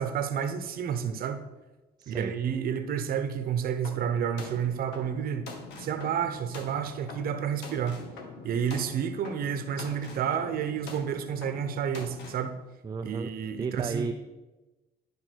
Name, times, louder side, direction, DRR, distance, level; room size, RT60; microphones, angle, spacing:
voice 1, 0.0-1.4 2.1-5.5 5.8-8.0 8.4-12.5 13.0-14.1, right 8 dB, 60° right, 9 dB, 0.9 m, -30 dB
voice 2, 2.0-2.3 12.8-13.3 13.6-14.1, right 5 dB, 25° right, 7 dB, 0.5 m, -33 dB
sound 1, 3.8-12.5, left 3 dB, 90° left, 1.3 m, -44 dB
11.5 x 5.4 x 4.6 m, 1.1 s
cardioid pair, 110°, 17 cm